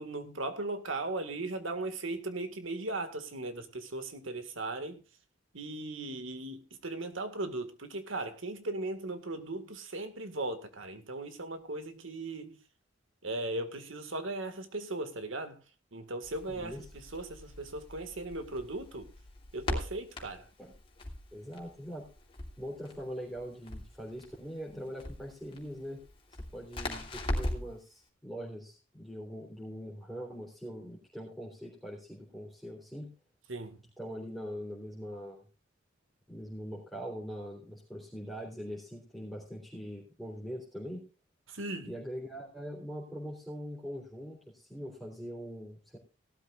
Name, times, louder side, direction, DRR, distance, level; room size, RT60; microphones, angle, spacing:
voice 1, 0.0-5.0 5.5-12.6 13.2-15.6 15.9-19.1 19.5-20.5 33.5-33.8 41.5-41.9, right 2 dB, 80° right, 1.9 m, -38 dB
Crackle, 16.2-27.8, left 1 dB, 25° left, 3.1 m, -40 dB
voice 2, 16.5-16.8 20.6-20.7 21.3-22.1 22.6-26.0 26.5-33.1 34.0-35.4 36.3-41.1 41.8-46.0, equal, ahead, 3.5 m, -42 dB
18.0 x 13.0 x 2.5 m
head